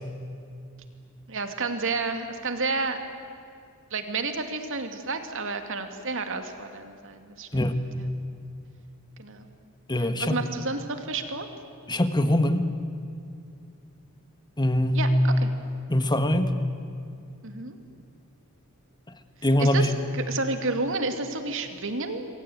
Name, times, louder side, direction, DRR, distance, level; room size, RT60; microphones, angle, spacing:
voice 1, 1.3-3.0 3.9-7.7 8.0-8.1 9.2-9.5 9.9-11.5 14.9-15.5 17.4-17.8 19.6-22.3, right 3 dB, 60° right, 6 dB, 2.5 m, -31 dB
voice 2, 9.9-10.4 11.9-12.7 14.6-15.0 15.9-16.5 19.4-19.9, left 1 dB, 20° left, 8 dB, 1.5 m, -22 dB
27.5 x 23.0 x 9.4 m, 2.4 s
head